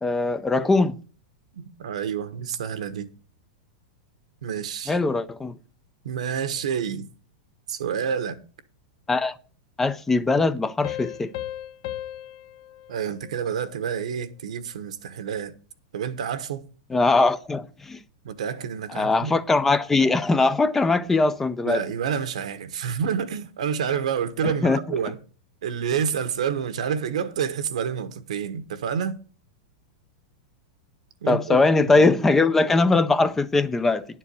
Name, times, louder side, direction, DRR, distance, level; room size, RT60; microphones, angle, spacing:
voice 1, 0.0-1.0 4.9-5.5 9.1-9.3 9.8-11.3 16.9-18.0 18.9-21.8 24.4-24.8 31.3-34.1, left 3 dB, 10° left, 0.5 m, -21 dB
voice 2, 1.5-3.1 4.4-5.0 6.0-7.1 7.7-8.4 12.9-15.5 15.9-16.7 18.2-19.4 21.6-25.2 25.6-29.2 31.2-32.1, right 7 dB, 85° right, 1.3 m, -28 dB
Piano, 10.8-14.1, left 13 dB, 50° left, 0.6 m, -37 dB
11.0 x 4.5 x 8.0 m
supercardioid pair, 155°, 3 cm